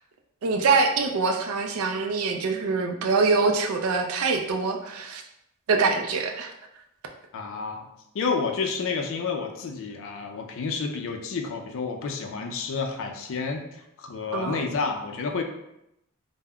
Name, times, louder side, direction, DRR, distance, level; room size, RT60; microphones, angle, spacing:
voice 1, 0.4-5.2 5.7-6.5 14.3-14.6, right 4 dB, 80° right, 4 dB, 0.4 m, -24 dB
voice 2, 7.3-7.9 8.1-13.6 14.0-15.4, left 4 dB, 65° left, 4 dB, 0.4 m, -30 dB
2.2 x 2.0 x 3.5 m, 0.82 s
head